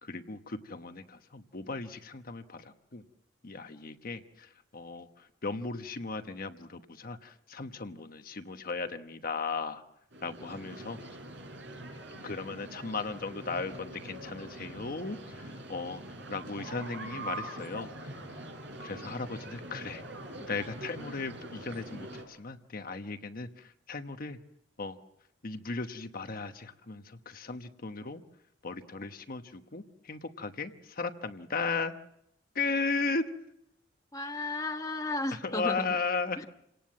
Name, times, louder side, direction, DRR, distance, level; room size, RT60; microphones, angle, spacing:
voice 1, 0.0-3.0 3.4-5.1 5.4-9.8 10.2-11.0 12.2-16.0 16.3-18.1 18.8-20.0 20.5-24.4 24.8-25.0 25.4-28.2 28.6-31.9 32.5-33.2 35.3-36.4, left 4 dB, 50° left, 8 dB, 1.1 m, -36 dB
sound 1, 10.1-22.2, right 1 dB, 65° right, 5.6 m, -44 dB
voice 2, 34.1-36.0 36.4-36.5, left 2 dB, 20° left, 5 dB, 1.1 m, -34 dB
28.0 x 18.5 x 7.5 m, 0.81 s
head